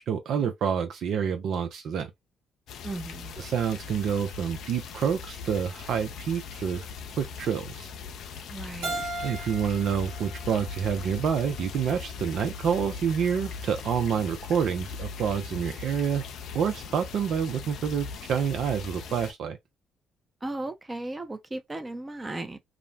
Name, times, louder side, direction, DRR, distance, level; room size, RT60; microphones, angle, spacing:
voice 1, 0.1-2.1 3.4-6.9 7.2-7.9 9.2-16.2 16.5-19.6, right 7 dB, 65° right, 0.5 m, -28 dB
sound 1, 2.7-19.3, left 5 dB, 65° left, 0.4 m, -40 dB
voice 2, 2.8-3.3 8.5-9.0 20.4-22.6, right 2 dB, 25° right, 0.7 m, -36 dB
Keyboard (musical), 8.8-11.6, right 2 dB, 80° right, 1.2 m, -38 dB
2.4 x 2.1 x 3.2 m
hypercardioid pair, 50°, 0 cm